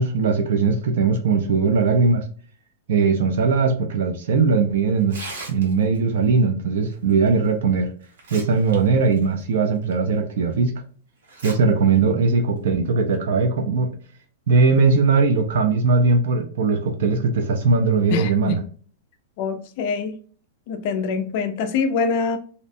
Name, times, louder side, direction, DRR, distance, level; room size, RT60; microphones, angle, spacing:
voice 1, 0.0-2.3 2.9-5.2 5.5-7.9 8.3-10.8 11.4-13.9 14.5-18.6, right 4 dB, 55° right, 0.4 m, -19 dB
Tearing, 5.0-6.0 7.4-7.5 8.0-8.8 9.1-9.2 9.9-10.0 11.2-11.5 11.9-12.0 12.9-13.1, right 3 dB, 85° right, 1.0 m, -37 dB
voice 2, 18.1-18.6 19.4-20.2 20.7-22.4, left 5 dB, 35° left, 0.3 m, -24 dB
2.6 x 2.1 x 2.5 m
supercardioid pair, 180°, 0 cm